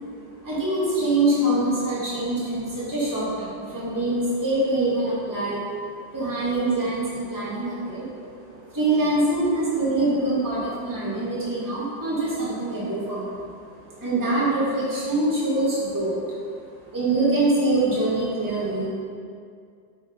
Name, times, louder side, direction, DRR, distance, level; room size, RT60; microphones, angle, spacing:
voice 1, 0.4-5.6 5.9-16.4 16.9-18.9, right 2 dB, 10° right, -9 dB, 2.1 m, -24 dB
8.7 x 5.1 x 5.4 m, 2.3 s
omnidirectional pair, 2.1 m